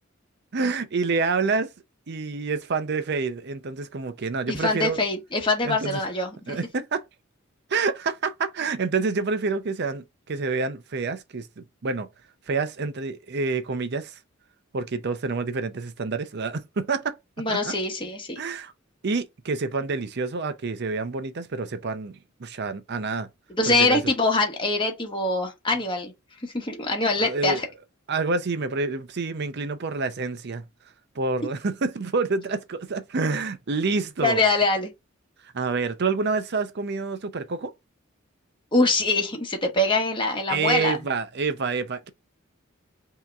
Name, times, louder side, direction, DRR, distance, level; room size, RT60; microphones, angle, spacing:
voice 1, 0.5-1.7 2.1-5.0 5.6-6.0 6.5-7.0 7.7-12.1 12.5-14.1 14.7-17.2 17.5-17.7 18.4-18.7 19.0-23.3 23.7-24.0 27.2-27.6 28.1-30.7 31.2-34.4 35.5-37.7 40.5-42.1, right 4 dB, 55° right, 0.6 m, -28 dB
voice 2, 4.5-6.6 17.4-18.4 23.6-26.1 26.4-27.7 34.2-34.9 38.7-41.0, left 2 dB, 25° left, 1.2 m, -24 dB
5.5 x 2.9 x 2.4 m
head